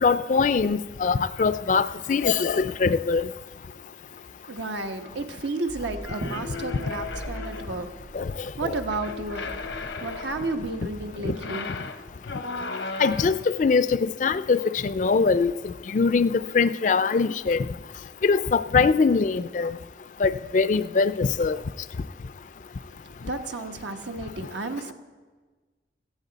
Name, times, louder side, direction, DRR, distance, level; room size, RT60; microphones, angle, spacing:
voice 1, 0.0-3.3 8.1-8.7 11.2-11.4 13.0-17.7 18.2-19.8 20.2-21.6, left 4 dB, 45° left, 0.3 m, -23 dB
voice 2, 4.5-7.9 8.6-9.5 10.0-11.7 23.3-24.9, right 3 dB, 85° right, 1.1 m, -32 dB
sound 1, 5.7-11.1, equal, 60° right, 1.9 m, -40 dB
sound 2, 6.0-7.9 8.8-10.6 11.3-13.5, left 4 dB, 80° left, 0.8 m, -36 dB
16.5 x 14.5 x 4.0 m
head